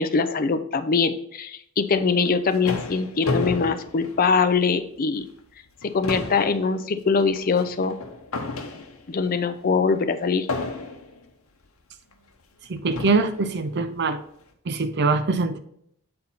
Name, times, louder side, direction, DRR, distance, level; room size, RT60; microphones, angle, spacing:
voice 1, 0.0-5.3 5.8-8.0 9.1-10.5, left 5 dB, 45° left, 11 dB, 0.5 m, -23 dB
sound 1, 2.1-4.8 5.2-5.4 5.7-9.2 10.5-11.2 12.1-12.2 12.9-13.4, left 3 dB, 85° left, 0.9 m, -32 dB
voice 2, 12.7-14.2 14.7-15.6, right 3 dB, 55° right, 10 dB, 0.6 m, -23 dB
7.7 x 4.2 x 4.0 m, 0.71 s
head